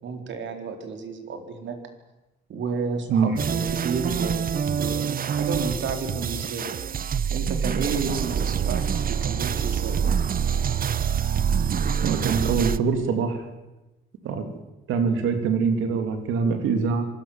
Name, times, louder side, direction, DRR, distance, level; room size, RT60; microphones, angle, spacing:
voice 1, 0.0-1.8 2.5-6.8 7.3-10.0, right 5 dB, 70° right, 5 dB, 4.4 m, -31 dB
sound 1, 3.4-12.8, right 7 dB, 45° right, 0.9 m, -26 dB
voice 2, 12.0-13.4 14.2-14.5 14.9-17.1, right 5 dB, 90° right, 6 dB, 3.0 m, -24 dB
25.5 x 18.5 x 7.5 m, 1.0 s
cardioid pair, 90°, 20 cm